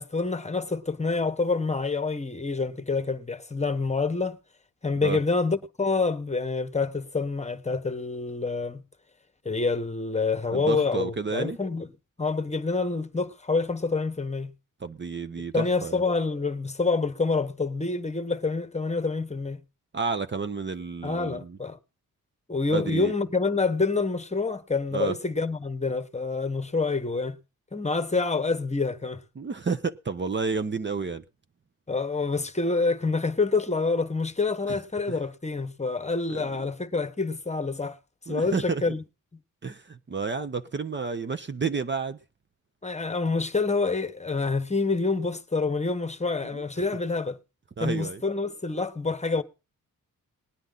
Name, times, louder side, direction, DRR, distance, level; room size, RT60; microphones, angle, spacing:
voice 1, 0.0-4.4 4.8-8.8 9.4-11.9 12.2-14.5 15.5-19.6 21.0-21.8 22.5-27.4 27.7-29.2 31.9-38.0 38.3-39.0 42.8-47.4 47.8-49.4, left 4 dB, 20° left, 1.2 m, -27 dB
voice 2, 10.5-11.6 14.8-16.0 19.9-21.6 22.7-23.1 24.9-25.1 29.4-31.2 34.7-34.8 35.1-35.2 36.3-36.4 38.3-38.8 39.6-42.2 46.5-46.6 47.8-48.2, right 5 dB, 35° right, 0.8 m, -31 dB
19.0 x 9.8 x 3.9 m
cardioid pair, 90°, 34 cm